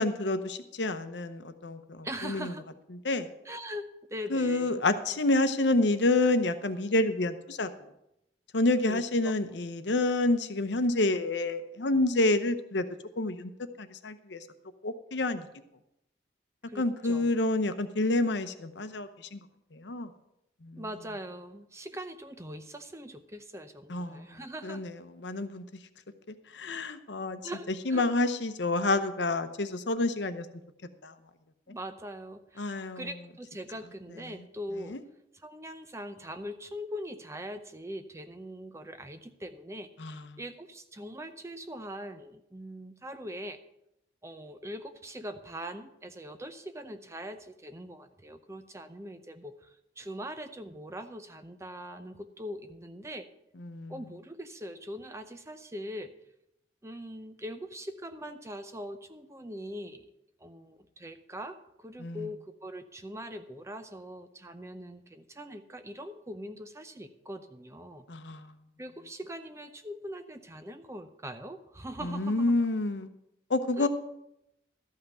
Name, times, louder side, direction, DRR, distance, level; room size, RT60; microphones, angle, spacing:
voice 1, 0.0-2.5 3.0-3.3 4.3-7.7 8.5-12.8 13.2-13.5 13.8-14.5 14.8-15.5 16.8-19.4 19.7-20.1 20.6-20.8 23.9-24.3 24.6-25.6 26.5-27.4 27.9-30.5 31.0-31.1 32.6-33.1 34.9-35.0 40.0-40.2 53.6-53.9 62.0-62.3 68.1-68.5 72.0-73.1 73.5-73.9, left 2 dB, 70° left, 10 dB, 0.8 m, -28 dB
voice 2, 2.0-2.6 3.4-4.8 8.8-9.3 16.7-17.3 20.8-24.9 27.4-28.1 31.7-35.0 35.3-43.6 44.2-53.3 53.9-56.1 56.8-60.1 60.4-68.1 68.8-72.5 73.8-73.9, equal, 15° right, 9 dB, 0.6 m, -42 dB
13.0 x 5.7 x 7.7 m, 0.83 s
head